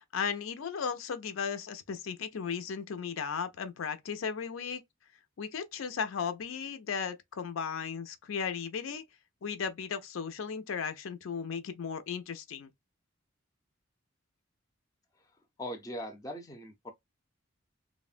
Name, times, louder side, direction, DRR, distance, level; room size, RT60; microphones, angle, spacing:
voice 1, 0.0-4.8 5.4-9.0 9.4-12.7, left 6 dB, 75° left, 0.4 m, -36 dB
voice 2, 15.6-16.9, equal, 15° left, 0.5 m, -40 dB
3.1 x 2.1 x 2.4 m
head